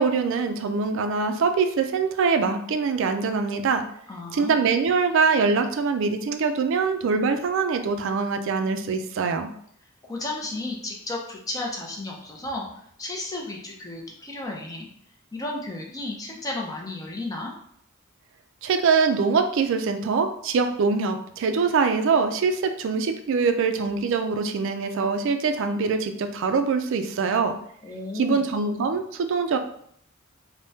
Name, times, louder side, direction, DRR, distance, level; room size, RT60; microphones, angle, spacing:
voice 1, 0.0-3.8 4.3-9.5 18.6-27.5 28.1-29.6, right 5 dB, 65° right, 7 dB, 0.3 m, -23 dB
voice 2, 4.1-4.7 10.0-12.7 13.0-14.9 15.3-17.5 27.8-28.4, left 2 dB, 15° left, 0 dB, 0.5 m, -33 dB
3.4 x 2.1 x 2.7 m, 0.66 s
head